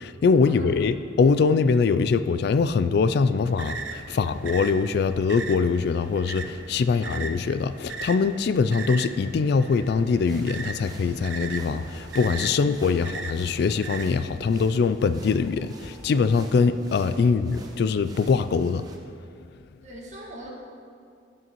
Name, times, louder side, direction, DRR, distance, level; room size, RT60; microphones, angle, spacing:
voice 1, 0.0-18.9, left 5 dB, 60° left, 12 dB, 0.3 m, -23 dB
sound 1, 3.4-14.0, right 4 dB, 80° right, 0.7 m, -38 dB
voice 2, 6.8-7.2 12.5-12.6 17.2-17.3 19.8-20.5, right 1 dB, 40° right, -3 dB, 1.8 m, -42 dB
sound 2, 10.2-19.0, right 1 dB, 20° right, 0.9 m, -48 dB
sound 3, 10.8-16.7, left 1 dB, 5° left, 1.4 m, -53 dB
17.5 x 6.4 x 3.0 m, 2.3 s
head